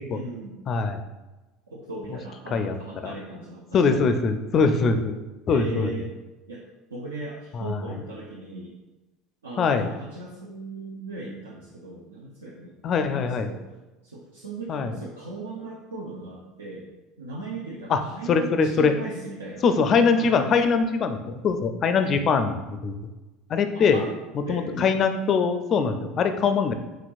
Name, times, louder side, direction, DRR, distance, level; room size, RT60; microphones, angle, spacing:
voice 1, 0.1-0.6 1.7-4.2 5.5-6.1 6.5-6.6 6.9-8.8 9.4-12.8 13.1-13.6 14.0-16.9 17.2-19.6 20.1-20.5 22.0-22.2 23.7-24.1 24.5-25.0, right 3 dB, 75° right, -4 dB, 0.5 m, -38 dB
voice 2, 0.7-1.0 2.5-2.8 3.0-3.1 3.7-5.2 5.5-6.1 7.5-7.8 9.6-9.9 12.8-13.5 14.7-15.0 17.9-18.0 18.3-18.9 19.6-23.0 23.5-24.0 24.5-26.7, left 5 dB, 40° left, 8 dB, 0.4 m, -22 dB
4.4 x 3.8 x 2.4 m, 1.1 s
figure-of-eight pair, 70°, 0 cm